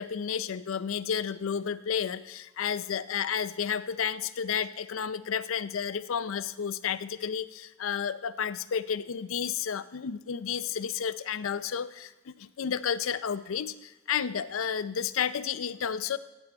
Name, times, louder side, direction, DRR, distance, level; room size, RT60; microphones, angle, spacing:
voice 1, 0.0-13.7 14.1-16.2, left 7 dB, 80° left, 15 dB, 0.5 m, -31 dB
15.5 x 8.1 x 4.3 m, 1.1 s
head